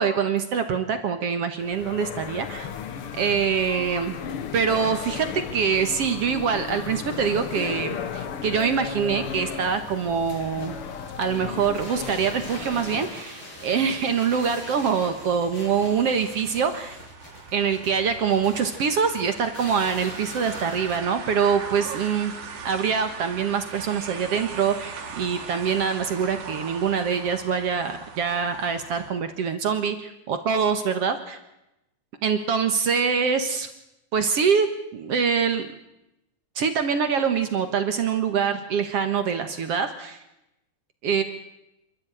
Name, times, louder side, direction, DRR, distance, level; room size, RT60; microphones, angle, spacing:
voice 1, 0.0-2.7 3.1-4.2 4.5-10.8 11.2-17.0 17.5-22.3 22.6-31.4 32.2-33.7 34.1-35.7 36.6-40.2 41.0-41.2, right 6 dB, 55° right, 8 dB, 2.0 m, -24 dB
sound 1, 1.6-13.2, left 7 dB, 55° left, 1.7 m, -35 dB
sound 2, 10.1-21.0, left 1 dB, 35° left, 7.1 m, -42 dB
sound 3, 13.5-29.1, right 5 dB, 85° right, 4.1 m, -40 dB
27.0 x 13.0 x 9.1 m, 0.90 s
omnidirectional pair, 3.9 m